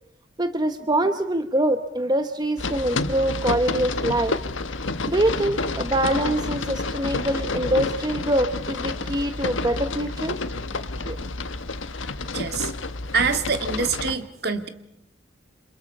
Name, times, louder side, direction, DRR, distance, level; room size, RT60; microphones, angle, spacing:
voice 1, 0.4-4.4 5.1-10.4 11.0-11.2, right 1 dB, 20° right, 9 dB, 1.0 m, -24 dB
sound 1, 2.6-14.2, left 3 dB, 90° left, 1.4 m, -29 dB
voice 2, 12.3-12.7 13.1-14.7, right 5 dB, 55° right, 8 dB, 2.0 m, -25 dB
29.0 x 27.0 x 5.5 m, 0.78 s
head